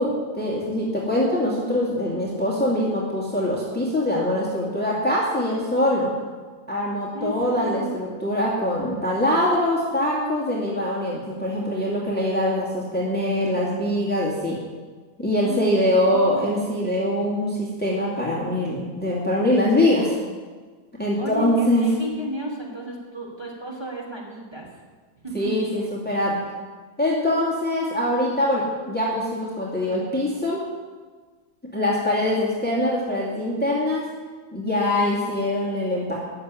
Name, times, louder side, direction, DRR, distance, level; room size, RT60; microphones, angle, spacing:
voice 1, 0.0-6.1 6.7-14.6 15.2-20.2 21.0-21.9 25.3-26.4 27.0-30.6 31.7-34.1 34.5-36.2, left 1 dB, 5° left, -5 dB, 2.2 m, -23 dB
voice 2, 7.1-7.9 15.4-16.6 21.2-24.7 25.2-25.5, right 1 dB, 15° right, -2 dB, 2.8 m, -33 dB
14.0 x 6.7 x 9.7 m, 1.4 s
omnidirectional pair, 2.0 m